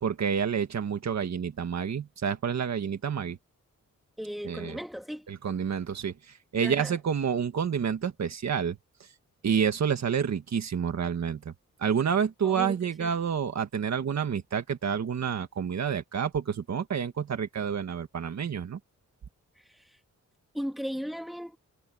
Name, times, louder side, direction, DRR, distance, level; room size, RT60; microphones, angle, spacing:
voice 1, 0.0-3.4 4.4-4.7 5.3-6.1 6.5-8.8 9.4-11.5 11.8-18.8, right 7 dB, 60° right, 1.7 m, -29 dB
voice 2, 4.2-5.3 6.6-7.0 12.4-13.1 19.6-20.0 20.5-21.6, equal, ahead, 2.8 m, -37 dB
wide cardioid pair, 160°, 31 cm